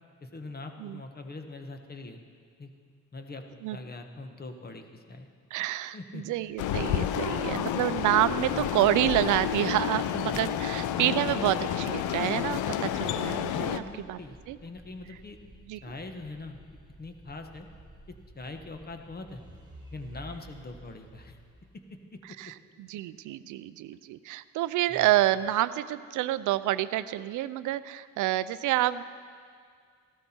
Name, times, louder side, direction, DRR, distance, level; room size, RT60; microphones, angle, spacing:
voice 1, 0.2-2.2 2.6-2.7 3.1-5.3 5.9-6.2 8.5-8.7 10.0-10.7 13.5-15.4 15.8-16.6 16.9-17.7 18.1-19.4 19.9-21.4 22.1-22.2 24.9-25.1, left 3 dB, 30° left, 5 dB, 1.2 m, -42 dB
voice 2, 5.5-13.8 14.1-14.2 14.5-14.6 15.7-15.8 22.3-29.0, right 14 dB, 85° right, 15 dB, 0.5 m, -28 dB
sound 1, 6.3-22.3, right 1 dB, 15° right, 2.1 m, -53 dB
sound 2, 6.6-13.8, left 10 dB, 80° left, 0.6 m, -30 dB
14.5 x 12.5 x 4.4 m, 2.1 s
cardioid pair, 90°, 30 cm